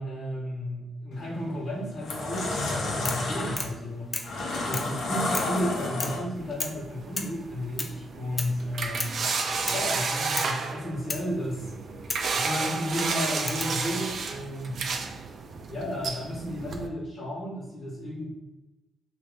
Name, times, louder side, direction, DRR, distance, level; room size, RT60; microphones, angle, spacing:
voice 1, 0.0-4.2 4.6-9.3 9.7-11.7 12.3-14.9 15.7-18.3, equal, 50° left, -7 dB, 1.0 m, -33 dB
sound 1, 1.1-1.4 1.8-6.5, left 2 dB, 75° left, 0.6 m, -31 dB
sound 2, 3.0-3.3 3.6-3.8 4.1-4.4 4.7-5.0 5.3-5.6 6.0-6.3 6.6-6.8 7.2-7.4 7.8-8.0 8.4-8.6 9.0-9.2 9.7-9.9 10.3-10.6 11.1-11.3 12.1-12.3 13.5-13.8 14.9-15.4, left 2 dB, 30° left, 0.4 m, -34 dB
sound 3, 6.4-16.9, right 4 dB, 65° right, 0.4 m, -32 dB
3.0 x 2.4 x 3.4 m, 1.1 s
cardioid pair, 75°, 0 cm